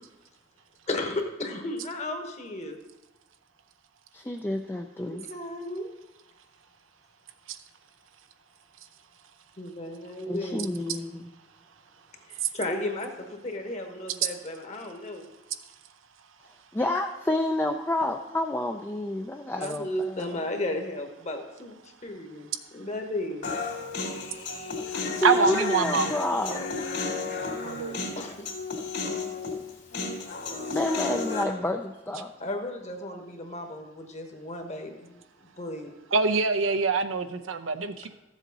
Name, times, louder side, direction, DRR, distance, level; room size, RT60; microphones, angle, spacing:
voice 1, 0.9-2.8 5.0-5.9 9.6-10.7 12.3-15.2 19.5-23.5 28.2-28.5 32.4-35.9, left 1 dB, 35° left, 4 dB, 1.2 m, -34 dB
voice 2, 4.1-5.3 10.3-11.3 16.7-20.4 24.9-26.7 30.7-32.3, left 1 dB, 10° left, 3 dB, 0.4 m, -29 dB
Human voice, 23.4-31.4, left 4 dB, 60° left, 2.4 m, -33 dB
voice 3, 25.2-26.1 27.6-28.1 36.1-38.1, right 4 dB, 90° right, 9 dB, 0.7 m, -25 dB
14.0 x 7.3 x 4.0 m, 0.98 s
head